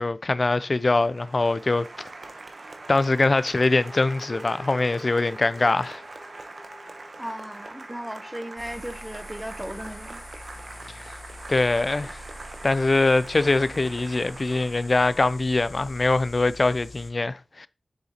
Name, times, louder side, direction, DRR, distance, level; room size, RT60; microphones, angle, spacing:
voice 1, 0.0-1.9 2.9-6.0 11.1-11.2 11.5-12.2 12.6-17.7, left 2 dB, 55° left, 0.4 m, -23 dB
Applause, 0.6-15.4, right 3 dB, 70° right, 0.9 m, -43 dB
sound 1, 3.5-11.2, left 1 dB, 10° left, 1.4 m, -49 dB
voice 2, 7.2-10.2, equal, 10° right, 0.8 m, -36 dB
sound 2, 8.6-17.1, left 1 dB, 70° left, 1.2 m, -44 dB
6.8 x 6.4 x 2.9 m
cardioid pair, 45°, 0 cm